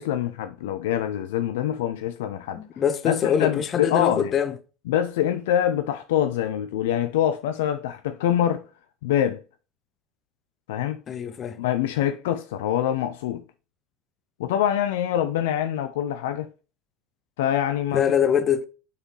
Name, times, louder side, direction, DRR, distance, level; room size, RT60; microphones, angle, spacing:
voice 1, 0.0-2.6 3.0-4.3 4.9-8.6 9.0-9.4 10.7-11.0 11.6-13.4 14.4-16.5 17.4-18.0, left 10 dB, 65° left, 0.4 m, -25 dB
voice 2, 2.5-4.6 11.1-11.6 17.9-18.6, left 8 dB, 35° left, 0.7 m, -23 dB
7.2 x 4.3 x 3.0 m
figure-of-eight pair, 70°, 0 cm